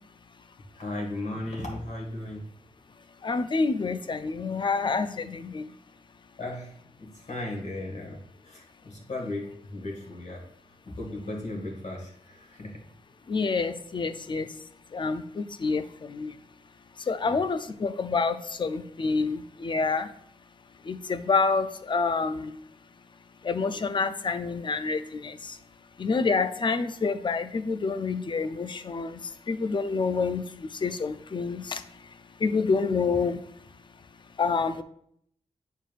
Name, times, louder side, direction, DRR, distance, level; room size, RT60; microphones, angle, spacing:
voice 1, 0.8-2.5 6.4-10.4 10.9-12.8 17.2-17.4, left 1 dB, 65° left, -1 dB, 1.9 m, -36 dB
voice 2, 3.2-5.7 13.3-14.5 14.9-16.3 17.1-20.1 20.9-22.5 23.4-25.6 26.0-29.2 29.5-31.8 32.4-33.4 34.4-34.8, left 4 dB, 40° left, 10 dB, 0.4 m, -28 dB
9.1 x 4.5 x 2.4 m, 0.67 s
wide cardioid pair, 135°, 13 cm